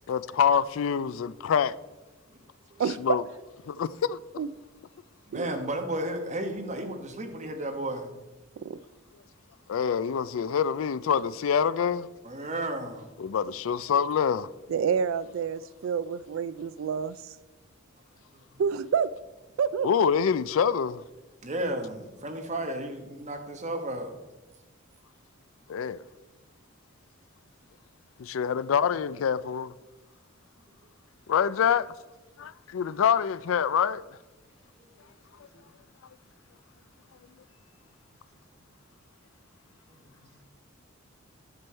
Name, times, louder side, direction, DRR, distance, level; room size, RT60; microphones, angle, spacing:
voice 1, 0.1-1.7 3.0-3.2 3.7-4.2 9.7-12.1 13.2-14.5 19.8-21.0 25.7-26.0 28.2-29.7 31.3-31.9 32.4-34.0, left 7 dB, 70° left, 0.4 m, -26 dB
voice 2, 2.8-3.2 4.4-4.5 5.3-5.5 8.6-8.8 14.7-17.4 18.6-19.1 19.6-19.9, right 7 dB, 65° right, 0.3 m, -28 dB
voice 3, 5.3-8.1 12.2-13.1 18.3-18.4 21.4-24.1 35.5-35.6 39.9-40.4, right 1 dB, 35° right, 1.3 m, -33 dB
11.0 x 7.0 x 4.5 m
head